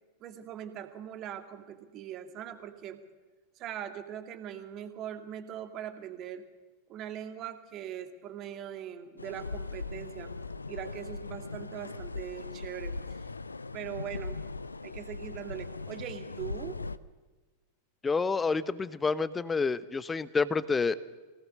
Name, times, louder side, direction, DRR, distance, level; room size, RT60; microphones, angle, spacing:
voice 1, 0.2-3.0 3.6-6.4 6.9-10.3 10.7-13.2 13.7-14.4 14.8-16.8, right 10 dB, 35° right, 7 dB, 2.1 m, -41 dB
sound 1, 9.2-17.0, left 3 dB, 80° left, 0.6 m, -39 dB
voice 2, 18.0-20.9, left 4 dB, 15° left, 16 dB, 0.9 m, -28 dB
24.0 x 17.5 x 6.6 m, 1.3 s
figure-of-eight pair, 90°, 0 cm